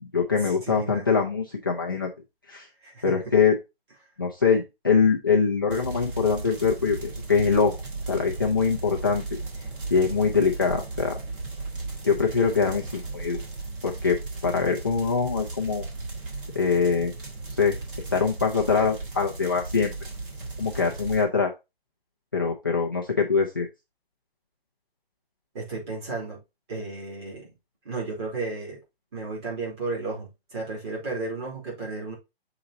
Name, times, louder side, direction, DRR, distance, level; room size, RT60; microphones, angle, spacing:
voice 1, 0.0-2.1 2.5-2.7 3.0-3.6 4.2-7.8 8.1-9.2 9.9-11.2 12.0-13.4 13.8-15.8 16.5-17.1 17.6-17.8 18.1-19.9 20.6-21.5 22.3-23.7, left 5 dB, 20° left, 0.4 m, -23 dB
voice 2, 0.7-1.1 2.8-3.2 25.5-26.4 26.7-27.5 27.8-28.8 29.1-32.1, right 3 dB, 25° right, 3.1 m, -33 dB
sound 1, 5.7-21.2, right 3 dB, 60° right, 3.3 m, -36 dB
7.0 x 3.9 x 3.9 m
hypercardioid pair, 175°, 30 cm